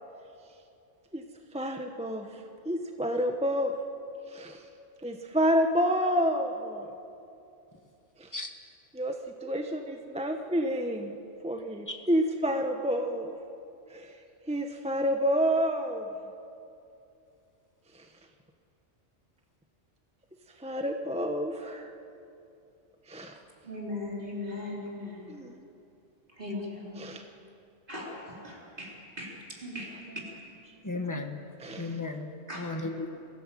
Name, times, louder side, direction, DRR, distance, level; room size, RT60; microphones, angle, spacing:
voice 1, 1.5-2.3 2.7-3.7 4.3-4.6 5.0-6.9 9.0-9.1 9.4-11.2 11.4-13.3 13.9-14.0 14.5-16.0 20.6-21.9 23.1-23.3 25.3-25.5 27.0-27.2 31.6-31.9, equal, 5° right, 4 dB, 0.9 m, -28 dB
voice 2, 23.6-25.3 26.4-27.1 27.9-29.3 29.6-30.2 32.5-32.7, left 2 dB, 45° right, -4 dB, 4.0 m, -38 dB
voice 3, 30.8-31.4 31.8-33.1, left 2 dB, 15° left, 5 dB, 1.3 m, -35 dB
23.0 x 15.0 x 7.6 m, 2.7 s
omnidirectional pair, 1.2 m